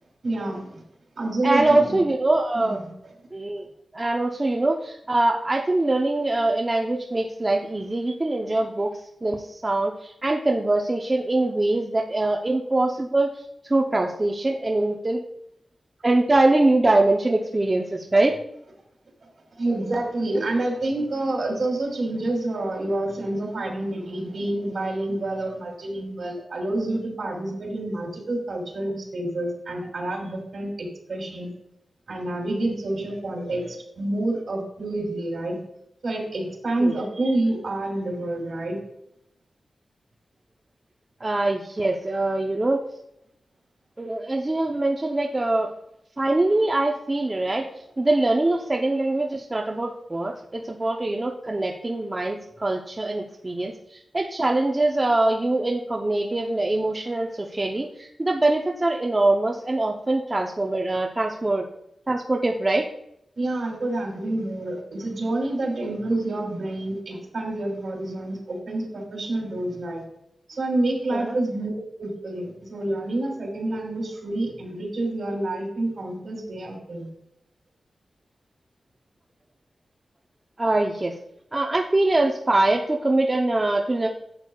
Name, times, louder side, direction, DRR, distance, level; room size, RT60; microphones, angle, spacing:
voice 1, 0.2-0.8 1.2-2.0 2.5-3.1 19.6-31.5 32.1-35.6 36.0-38.8 63.4-70.0 70.5-77.1, right 2 dB, 60° right, 1 dB, 2.8 m, -28 dB
voice 2, 1.4-2.8 3.3-3.6 3.9-13.3 13.6-15.2 16.0-18.3 36.8-37.0 41.2-42.8 44.0-45.7 46.2-47.7 48.0-61.7 62.1-62.9 71.1-71.4 80.6-81.2 81.5-84.1, right 2 dB, 25° right, 1 dB, 0.6 m, -23 dB
11.0 x 8.1 x 2.3 m, 0.78 s
wide cardioid pair, 130°, 0 cm